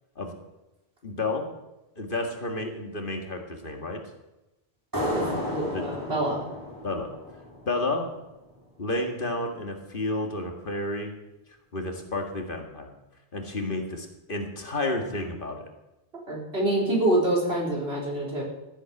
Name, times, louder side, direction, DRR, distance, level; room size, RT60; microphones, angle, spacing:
voice 1, 1.0-1.5 2.0-4.0 5.7-5.8 6.8-7.1 7.7-8.0 8.8-11.1 11.7-12.9 13.3-15.7, left 2 dB, 55° left, 3 dB, 2.1 m, -31 dB
sound 1, 4.9-8.2, left 1 dB, 20° right, 3.6 m, -33 dB
voice 2, 5.1-6.4 16.3-18.4, right 1 dB, 75° right, -3 dB, 4.5 m, -26 dB
14.5 x 7.9 x 7.7 m, 0.97 s
omnidirectional pair, 1.1 m